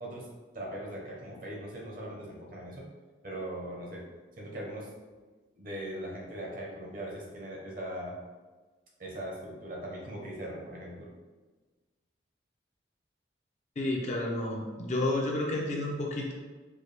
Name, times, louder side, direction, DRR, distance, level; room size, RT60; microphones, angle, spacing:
voice 1, 0.5-2.9 3.2-4.1 4.4-4.9 5.6-8.2 9.0-11.1, right 1 dB, 50° right, -3 dB, 0.9 m, -40 dB
voice 2, 13.8-16.3, left 2 dB, 40° left, -1 dB, 0.6 m, -31 dB
4.7 x 2.3 x 3.3 m, 1.3 s
head